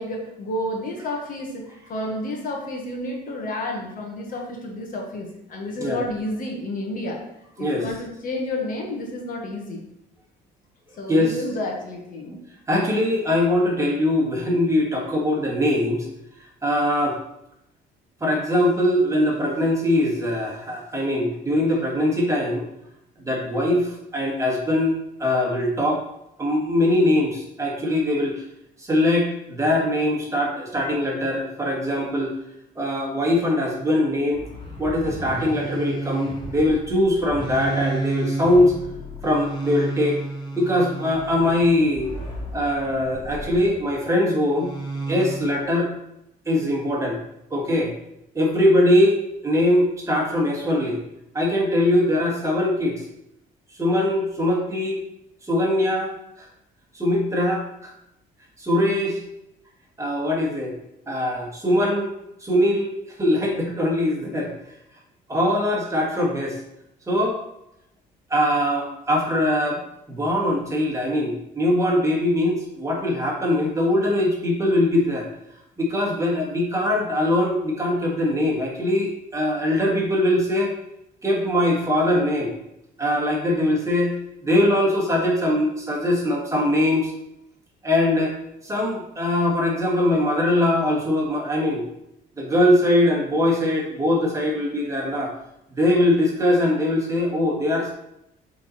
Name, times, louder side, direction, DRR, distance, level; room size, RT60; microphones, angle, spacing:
voice 1, 0.0-7.2 7.6-9.8 11.0-12.4, left 1 dB, 55° left, 0 dB, 1.7 m, -30 dB
voice 2, 12.7-16.1 16.6-17.2 18.2-22.6 23.2-26.0 26.4-28.4 28.8-32.3 32.8-34.4 34.8-38.7 39.2-40.2 40.6-42.1 42.5-44.7 45.1-45.9 46.5-47.2 47.5-47.9 48.4-51.0 51.3-53.0 53.8-55.0 55.5-56.5 56.9-57.9 58.6-59.2 60.0-60.7 61.1-62.1 62.4-62.9 63.2-64.5 65.3-66.6 67.1-67.4 68.3-69.8 70.1-75.3 75.8-80.7 81.2-82.6 83.0-84.1 84.4-87.1 87.8-88.3 88.6-91.8 92.4-95.3 95.7-97.9, left 1 dB, 20° right, -2 dB, 1.7 m, -22 dB
sound 1, 34.3-43.9 44.5-45.7, right 2 dB, 25° left, 1.9 m, -32 dB
7.2 x 4.1 x 4.4 m, 0.82 s
cardioid pair, 110°, 17 cm